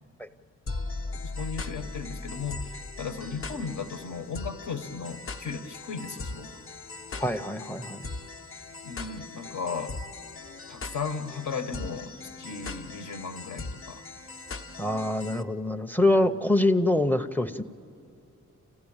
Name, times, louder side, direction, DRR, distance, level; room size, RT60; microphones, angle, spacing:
sound 1, 0.7-15.4, left 3 dB, 45° left, 0.8 m, -39 dB
voice 1, 1.2-2.7 3.0-6.6 8.8-10.0 10.7-12.1 12.4-14.0, left 5 dB, 75° left, 6 dB, 1.2 m, -35 dB
voice 2, 7.2-8.1 14.8-17.6, left 1 dB, 5° left, 12 dB, 0.5 m, -25 dB
28.5 x 15.0 x 8.8 m, 2.8 s
wide cardioid pair, 120°, 30 cm